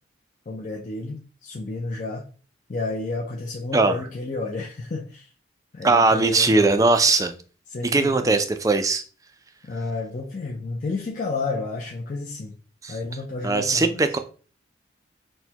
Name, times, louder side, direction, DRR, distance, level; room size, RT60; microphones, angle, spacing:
voice 1, 0.5-2.3 2.7-5.3 5.7-6.9 7.7-8.4 9.6-12.6 12.9-14.0, left 3 dB, 40° left, -1 dB, 0.5 m, -31 dB
voice 2, 5.8-7.3 7.9-9.0 12.8-13.0 13.4-14.2, right 3 dB, 20° right, 8 dB, 0.3 m, -19 dB
6.2 x 2.1 x 2.8 m, 0.39 s
head